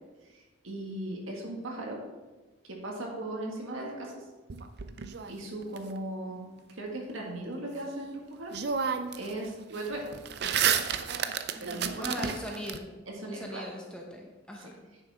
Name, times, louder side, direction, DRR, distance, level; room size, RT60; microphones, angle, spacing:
voice 1, 0.3-2.0 2.7-4.2 5.3-10.0 11.6-12.1 13.2-13.6 14.6-14.7, right 1 dB, 75° right, -1 dB, 1.8 m, -38 dB
sound 1, 4.5-5.8 8.0-8.1 8.5-9.3 9.6-12.8, right 7 dB, 50° right, 0.5 m, -31 dB
voice 2, 11.5-12.9 13.2-14.8, equal, 5° left, -1 dB, 1.0 m, -40 dB
9.1 x 6.9 x 3.6 m, 1.2 s
head